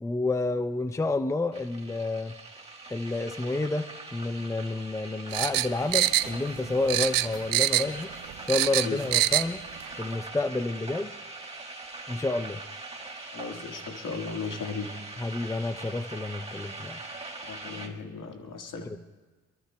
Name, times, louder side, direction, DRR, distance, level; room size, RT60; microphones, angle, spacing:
voice 1, 0.0-2.4 2.9-8.1 8.4-9.6 10.0-11.2 12.1-12.6 15.2-17.0 18.8-19.0, left 2 dB, 10° left, 11 dB, 0.5 m, -29 dB
sound 1, 1.5-17.9, right 2 dB, 20° right, 1.7 m, -42 dB
sound 2, 5.3-6.6 6.9-8.0 8.3-9.5 9.8-9.9, right 14 dB, 80° right, 0.5 m, -24 dB
voice 2, 13.3-14.9 17.5-18.9, left 5 dB, 70° left, 3 dB, 1.9 m, -36 dB
26.0 x 23.0 x 2.3 m, 1.3 s
cardioid pair, 65°, 33 cm